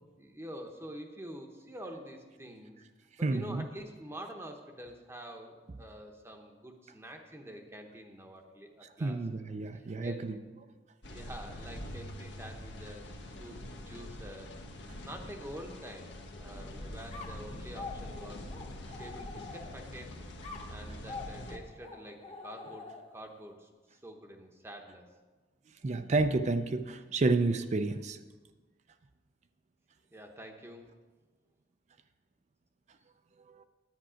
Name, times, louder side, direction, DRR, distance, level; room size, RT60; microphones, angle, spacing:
voice 1, 0.2-2.8 3.2-9.2 9.7-10.3 11.1-16.1 16.4-18.5 19.0-20.2 20.7-25.1 30.1-30.9, equal, 15° right, 3 dB, 0.8 m, -47 dB
voice 2, 3.2-3.7 9.0-10.4 25.8-28.2 33.5-33.6, right 3 dB, 40° right, 9 dB, 0.4 m, -30 dB
sound 1, 11.0-21.6, left 1 dB, 70° left, 1.2 m, -44 dB
sound 2, 17.1-20.0 20.4-23.3, left 4 dB, 30° left, 1.1 m, -46 dB
10.0 x 9.0 x 5.0 m, 1.3 s
head